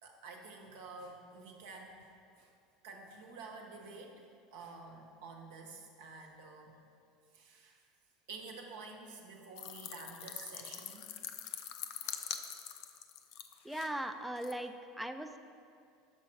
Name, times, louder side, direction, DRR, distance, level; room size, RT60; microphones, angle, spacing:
voice 1, 0.0-2.1 2.4-2.5 2.8-4.2 4.5-6.7 7.3-7.8 8.3-11.2 12.0-12.3, right 3 dB, 75° right, 1 dB, 0.9 m, -50 dB
sound 1, 9.6-13.9 14.4-14.5, left 10 dB, 65° left, 0.4 m, -44 dB
voice 2, 13.6-15.4, right 1 dB, 5° right, 7 dB, 0.4 m, -39 dB
6.1 x 5.6 x 4.6 m, 2.4 s
hypercardioid pair, 85°, 0 cm